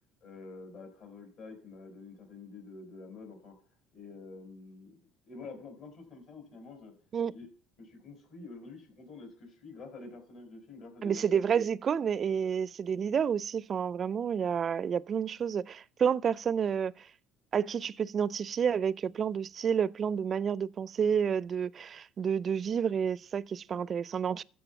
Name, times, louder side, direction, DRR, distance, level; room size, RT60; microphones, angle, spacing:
voice 1, 0.2-3.5 3.9-6.9 7.3-7.5 7.8-11.5 23.7-23.8, left 3 dB, 60° left, 4.8 m, -48 dB
voice 2, 11.0-17.1 17.5-24.4, right 7 dB, 40° right, 0.4 m, -30 dB
14.5 x 4.9 x 7.1 m
hypercardioid pair, 75°, 0 cm